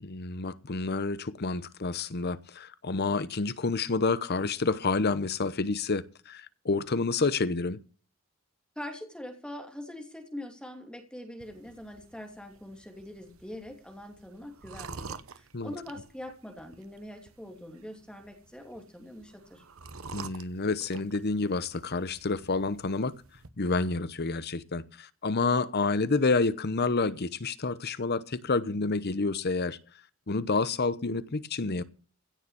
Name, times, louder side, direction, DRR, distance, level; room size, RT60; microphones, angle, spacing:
voice 1, 0.0-7.8 15.5-15.7 20.1-23.1 23.6-29.8 30.3-31.8, left 3 dB, 50° left, 0.9 m, -29 dB
voice 2, 8.8-19.6, left 1 dB, 5° left, 2.7 m, -43 dB
sound 1, 11.4-23.5, right 4 dB, 80° right, 1.0 m, -49 dB
16.0 x 7.0 x 7.0 m
head